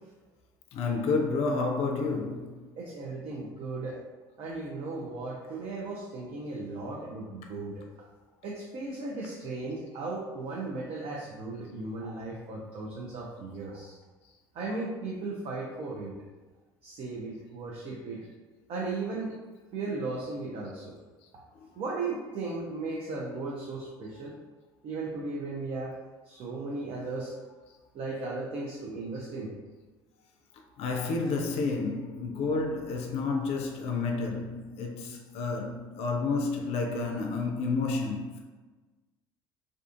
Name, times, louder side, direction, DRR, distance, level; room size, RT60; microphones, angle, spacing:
voice 1, 0.7-2.6 30.8-38.4, left 4 dB, 55° left, 0.4 m, -30 dB
voice 2, 2.8-4.0 4.4-7.8 8.4-14.0 14.5-16.1 16.8-18.2 18.7-19.3 19.7-21.0 21.8-24.3 24.8-25.9 26.2-27.3 27.9-29.5, right 3 dB, 50° right, 0.5 m, -36 dB
2.4 x 2.4 x 2.4 m
hypercardioid pair, 60°, 12 cm